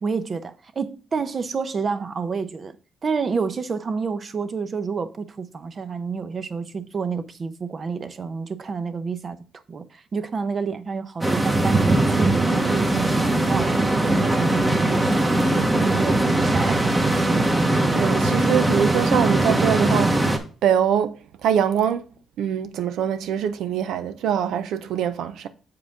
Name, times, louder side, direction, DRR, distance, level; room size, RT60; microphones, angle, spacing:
voice 1, 0.0-2.8 3.0-15.3 15.7-16.8, right 5 dB, 40° right, 0.8 m, -29 dB
sound 1, 11.2-20.4, right 2 dB, 15° right, 1.2 m, -20 dB
voice 2, 17.9-20.2 20.6-22.1 22.4-25.5, right 9 dB, 80° right, 0.6 m, -23 dB
7.3 x 4.8 x 3.6 m
cardioid pair, 90°, 0 cm